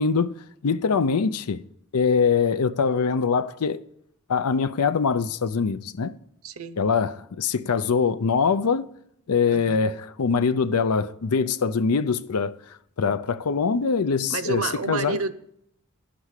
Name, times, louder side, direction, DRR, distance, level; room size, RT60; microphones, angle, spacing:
voice 1, 0.0-1.6 1.9-3.8 4.3-6.1 6.8-8.9 9.3-12.5 13.0-14.6 14.9-15.2, left 5 dB, 90° left, 0.5 m, -23 dB
voice 2, 6.4-6.8 9.5-9.8 14.3-15.3, right 4 dB, 70° right, 0.7 m, -29 dB
11.5 x 6.1 x 8.2 m
head